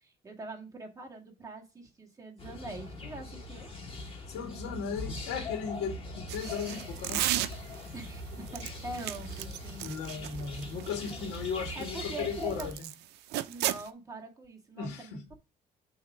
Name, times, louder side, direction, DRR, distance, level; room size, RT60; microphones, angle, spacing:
voice 1, 0.0-3.7 7.9-9.9 11.8-12.8 13.5-15.3, right 2 dB, 20° right, 1.7 m, -43 dB
sound 1, 2.4-12.7, left 2 dB, 35° left, 2.4 m, -41 dB
voice 2, 4.3-7.3 9.8-12.9 14.8-15.2, left 6 dB, 85° left, 2.4 m, -36 dB
sound 2, 6.3-7.9 8.5-12.9 13.3-13.9, right 14 dB, 80° right, 0.6 m, -34 dB
6.2 x 3.6 x 5.9 m
cardioid pair, 110°, 17 cm